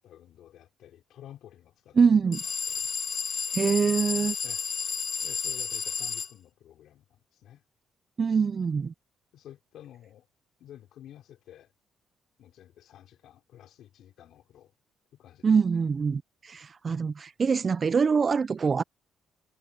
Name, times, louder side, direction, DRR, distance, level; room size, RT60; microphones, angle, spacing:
voice 1, 0.0-2.3 2.7-2.9 4.4-4.6 5.2-7.6 9.3-10.3 10.6-11.7 12.4-14.7 15.1-15.6, left 11 dB, 80° left, 3.6 m, -51 dB
voice 2, 2.0-2.4 3.5-4.4 8.2-8.9 15.4-18.8, right 5 dB, 40° right, 0.4 m, -24 dB
sound 1, 2.3-6.3, left 6 dB, 50° left, 1.1 m, -32 dB
cardioid pair, 90°, 0 cm